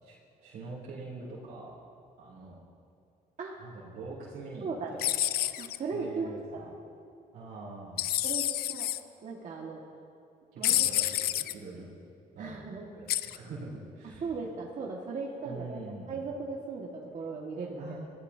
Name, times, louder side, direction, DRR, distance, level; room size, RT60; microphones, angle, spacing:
voice 1, 0.0-1.8 2.2-2.6 3.6-5.0 5.3-5.5 5.9-6.6 7.3-8.1 10.5-11.9 12.3-12.6 12.9-14.3 15.4-16.2 17.8-18.0, right 3 dB, 85° right, -7 dB, 3.5 m, -44 dB
voice 2, 4.6-4.9 5.6-6.7 8.2-8.9 9.2-9.8 10.6-11.0 12.4-12.9 14.2-15.8 16.1-18.0, right 4 dB, 50° right, -3 dB, 1.8 m, -37 dB
sound 1, 5.0-5.8 8.0-9.0 10.6-11.5 13.1-13.4, left 13 dB, 70° left, 0.5 m, -28 dB
23.0 x 16.0 x 2.8 m, 2.5 s
cardioid pair, 100°, 16 cm